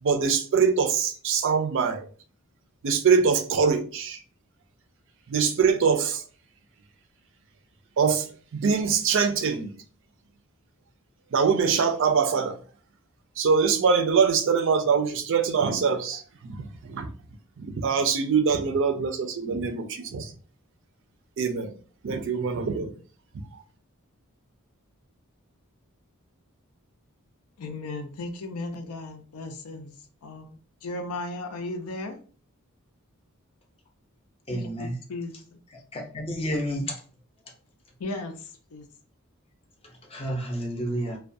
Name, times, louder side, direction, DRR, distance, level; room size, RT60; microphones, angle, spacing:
voice 1, 0.0-2.1 2.8-4.2 5.3-6.2 8.0-9.7 11.3-12.6 13.4-17.1 17.6-20.3 21.4-21.7 22.0-22.9, right 5 dB, 60° right, 0.4 m, -23 dB
voice 2, 27.6-29.9 30.2-32.2 34.5-35.6 38.0-38.9, left 2 dB, 85° left, 0.5 m, -36 dB
voice 3, 34.5-35.0 35.9-36.9 40.1-41.2, equal, 25° left, 0.5 m, -30 dB
2.3 x 2.2 x 2.5 m
head